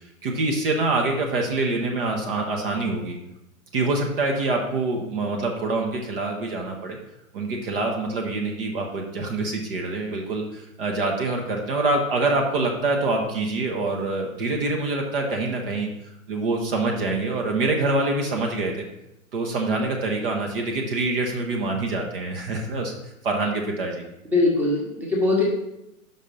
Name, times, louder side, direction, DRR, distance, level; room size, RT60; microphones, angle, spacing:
voice 1, 0.2-3.2 3.7-7.0 7.3-15.9 16.3-18.9 19.3-22.9 23.2-24.0, right 2 dB, 40° right, 1 dB, 1.0 m, -25 dB
voice 2, 24.3-25.4, left 2 dB, 5° right, -2 dB, 1.1 m, -21 dB
5.5 x 4.2 x 5.2 m, 0.86 s
figure-of-eight pair, 115°, 42 cm